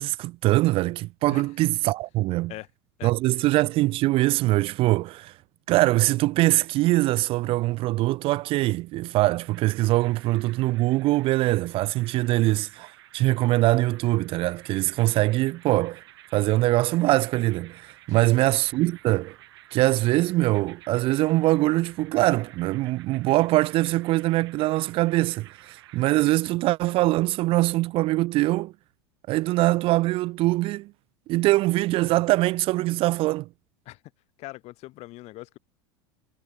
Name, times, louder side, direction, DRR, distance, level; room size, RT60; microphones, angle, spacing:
voice 1, 0.0-2.5 3.0-5.3 5.7-16.0 16.3-19.4 19.7-28.7 29.3-30.9 31.3-33.5, right 18 dB, 40° right, 0.4 m, -23 dB
voice 2, 3.0-3.4 18.1-18.3 33.8-34.0 34.4-35.6, left 19 dB, 50° left, 2.9 m, -41 dB
sound 1, 9.4-26.4, right 16 dB, 70° right, 6.9 m, -52 dB
hypercardioid pair, 85°, 14 cm